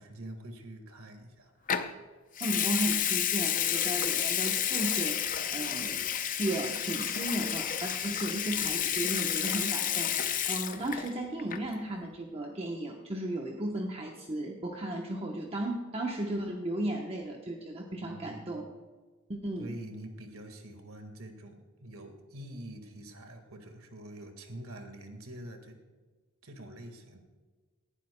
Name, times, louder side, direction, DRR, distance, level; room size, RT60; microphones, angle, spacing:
voice 1, 0.0-1.9 18.0-18.6 19.6-25.8 26.4-27.2, right 1 dB, 75° right, 6 dB, 1.8 m, -46 dB
Water tap faucet / Sink (filling or washing) / Liquid, 1.7-1.9 2.4-11.1 11.4-11.7, left 9 dB, 40° left, 0.6 m, -30 dB
voice 2, 2.4-6.0 6.4-18.6 19.3-19.8, right 1 dB, 25° right, 1 dB, 1.0 m, -35 dB
18.5 x 11.5 x 2.2 m, 1.4 s
head